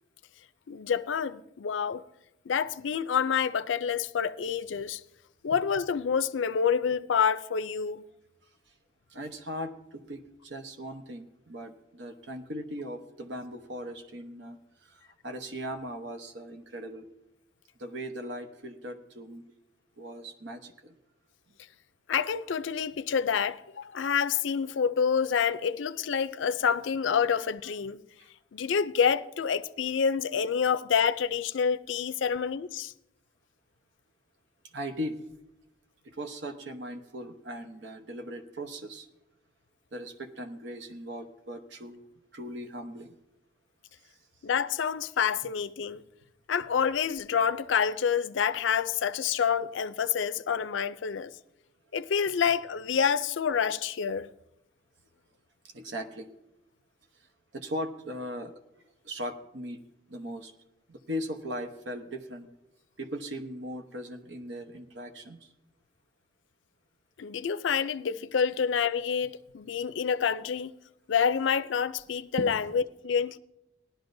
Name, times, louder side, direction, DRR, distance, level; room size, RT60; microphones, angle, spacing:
voice 1, 0.7-2.0 2.5-5.0 5.4-8.0 22.1-28.0 28.5-32.9 44.4-46.0 46.5-51.3 51.9-54.3 67.2-70.7 71.1-73.4, left 7 dB, 80° left, 0.4 m, -28 dB
voice 2, 9.1-17.1 17.8-19.4 20.0-20.9 34.7-35.2 36.0-39.1 39.9-42.0 42.3-43.1 55.7-56.3 57.5-58.5 59.0-59.8 60.1-60.5 60.9-62.5 63.0-65.4 72.4-72.5, equal, 70° right, 0.9 m, -39 dB
18.5 x 11.5 x 2.6 m
head